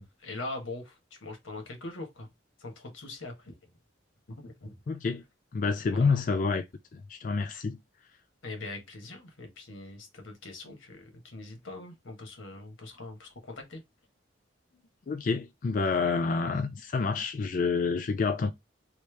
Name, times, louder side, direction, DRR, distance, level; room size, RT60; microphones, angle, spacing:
voice 1, 0.0-2.3 2.6-3.5 4.3-4.8 5.9-6.2 8.4-13.8, left 2 dB, 85° left, 1.4 m, -42 dB
voice 2, 4.9-5.2 5.5-6.6 6.9-7.8 15.1-18.5, left 4 dB, 40° left, 0.3 m, -28 dB
3.2 x 2.8 x 3.1 m
head